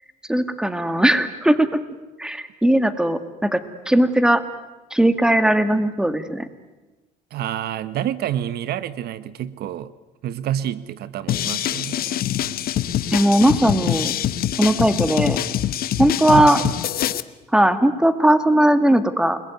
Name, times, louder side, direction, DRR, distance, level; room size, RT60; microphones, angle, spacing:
voice 1, 0.3-1.8 2.2-4.4 4.9-6.5 13.1-14.1 14.6-15.4 16.0-16.6 17.5-19.4, right 1 dB, 5° right, 11 dB, 2.1 m, -18 dB
voice 2, 7.3-9.9 10.2-12.2 16.3-16.7, right 11 dB, 70° right, 16 dB, 1.1 m, -28 dB
sound 1, 11.3-17.2, left 11 dB, 60° left, 1.2 m, -24 dB
29.0 x 21.5 x 9.5 m, 1.1 s
cardioid pair, 110°, 17 cm